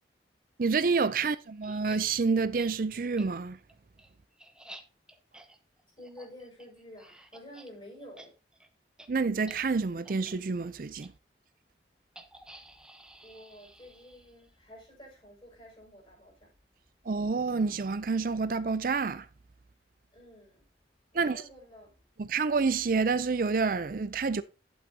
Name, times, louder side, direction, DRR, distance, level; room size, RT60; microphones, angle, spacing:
voice 1, 0.6-3.6 9.1-11.1 17.1-19.3 21.1-21.4 22.2-24.4, right 4 dB, 50° right, 0.4 m, -28 dB
sound 1, 1.6-2.0 2.6-2.7 3.2-3.3 3.7-7.7 8.0-8.3 8.5-8.7 9.0-9.1 9.4-9.6 10.1-10.3 11.0-11.1 12.2-14.5, right 1 dB, 5° right, 0.9 m, -51 dB
voice 2, 6.0-8.3 13.2-16.5 20.1-20.6 21.1-22.0, left 1 dB, 30° left, 6.2 m, -50 dB
11.5 x 8.6 x 2.8 m
head